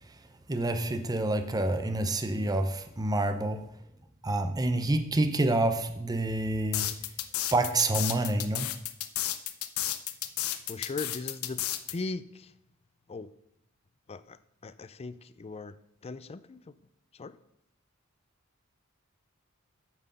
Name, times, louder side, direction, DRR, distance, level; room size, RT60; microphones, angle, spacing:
voice 1, 0.5-3.6 4.2-6.9 7.5-8.7, right 2 dB, 20° right, 8 dB, 0.6 m, -28 dB
sound 1, 6.7-11.9, left 13 dB, 80° left, 0.7 m, -32 dB
voice 2, 10.7-12.5 13.1-13.3 14.1-15.8 16.0-16.8 17.1-17.4, left 3 dB, 30° left, 15 dB, 0.4 m, -39 dB
9.1 x 6.3 x 5.3 m, 0.77 s
head